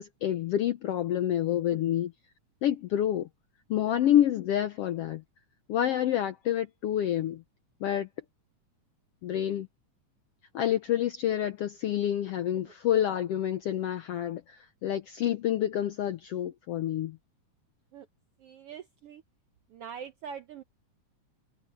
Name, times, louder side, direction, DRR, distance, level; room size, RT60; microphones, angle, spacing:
voice 1, 0.0-2.1 2.6-3.3 3.7-5.2 5.7-7.4 7.8-8.1 9.2-9.7 10.5-17.2, left 11 dB, 80° left, 1.4 m, -28 dB
voice 2, 18.4-19.2 19.7-20.6, right 7 dB, 75° right, 1.4 m, -43 dB
omnidirectional pair, 3.6 m